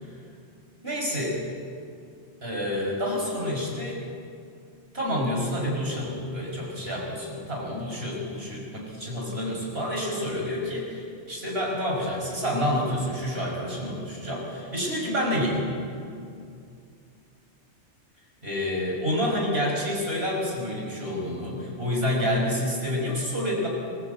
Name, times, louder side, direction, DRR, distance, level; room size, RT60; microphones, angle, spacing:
voice 1, 0.8-1.4 2.4-4.0 4.9-15.7 18.4-23.7, left 1 dB, 60° right, -2 dB, 5.9 m, -28 dB
26.0 x 15.5 x 8.2 m, 2.4 s
omnidirectional pair, 1.2 m